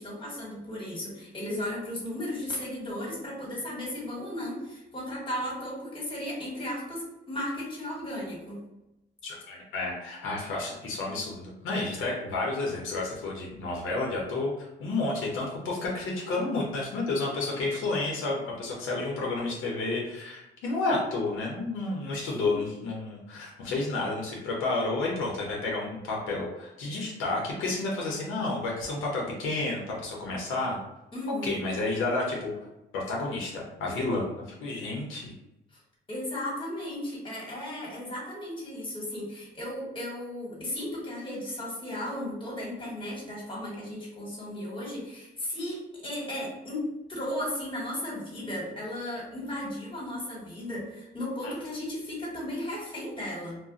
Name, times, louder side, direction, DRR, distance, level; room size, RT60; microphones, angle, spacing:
voice 1, 0.0-8.6 22.3-22.6 31.1-31.6 36.1-53.6, left 1 dB, 25° left, -4 dB, 1.5 m, -35 dB
voice 2, 9.2-30.8 31.4-32.5 32.9-34.3 34.6-35.3 51.4-51.5, left 2 dB, 85° left, -2 dB, 0.8 m, -31 dB
2.4 x 2.1 x 3.8 m, 0.91 s
cardioid pair, 90°, 20 cm